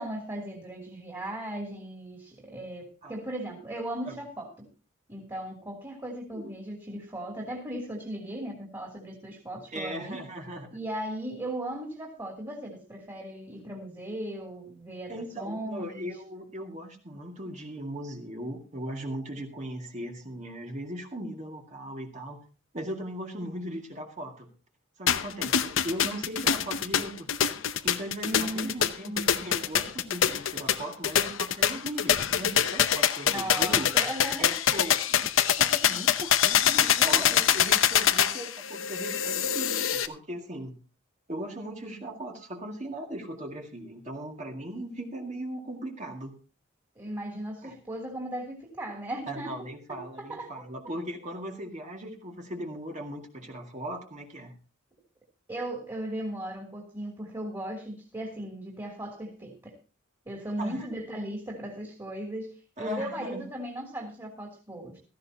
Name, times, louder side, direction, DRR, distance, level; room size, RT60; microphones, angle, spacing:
voice 1, 0.0-4.7 5.1-10.2 10.7-16.1 28.2-29.3 33.3-34.6 36.6-37.5 46.9-50.5 55.5-59.7 60.2-65.0, right 1 dB, 20° right, -1 dB, 3.0 m, -37 dB
voice 2, 9.7-10.7 15.1-22.4 22.7-24.5 25.0-27.3 27.8-33.9 34.4-40.8 41.3-46.3 47.6-47.8 49.3-54.6 60.6-60.9 62.8-63.4, right 1 dB, 35° right, 1 dB, 2.1 m, -38 dB
sound 1, 25.1-40.1, left 9 dB, 70° left, 0.8 m, -25 dB
16.5 x 14.5 x 2.9 m, 0.33 s
head